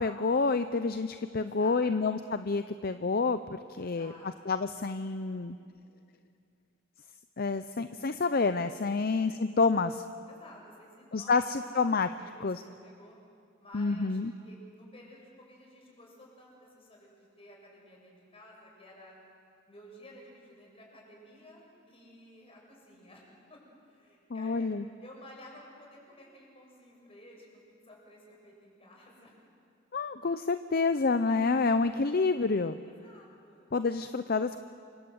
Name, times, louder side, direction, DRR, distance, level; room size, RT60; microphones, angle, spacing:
voice 1, 0.0-4.1 4.5-5.6 7.4-10.0 11.1-12.1 12.4-12.6 13.7-14.3 24.3-24.8 29.9-32.7 33.7-34.6, left 4 dB, 50° left, 11 dB, 0.6 m, -28 dB
voice 2, 1.3-2.2 3.7-4.3 4.6-4.7 8.9-9.1 10.3-13.1 13.6-19.1 19.7-24.7 25.0-29.4 32.8-33.7, left 1 dB, 30° left, -1 dB, 7.2 m, -54 dB
28.5 x 25.0 x 8.0 m, 2.4 s
head